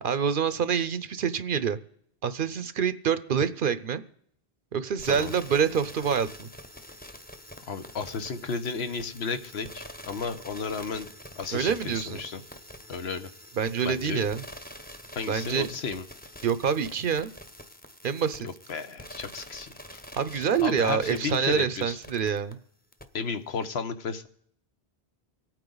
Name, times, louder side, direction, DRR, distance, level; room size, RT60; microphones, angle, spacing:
voice 1, 0.0-1.8 2.2-4.0 4.7-6.5 11.5-12.2 13.6-14.4 15.3-15.7 16.4-17.3 18.0-18.5 20.2-22.6, right 7 dB, 60° right, 14 dB, 0.8 m, -26 dB
sound 1, 5.0-22.5 22.9-23.0, equal, 10° left, 0.7 m, -46 dB
voice 2, 7.7-11.1 11.4-12.4 12.9-13.3 13.8-14.3 15.1-16.0 18.4-20.0 20.3-22.0 23.1-24.3, left 5 dB, 75° left, 9 dB, 1.2 m, -33 dB
25.0 x 9.0 x 3.9 m, 0.66 s
omnidirectional pair, 1.1 m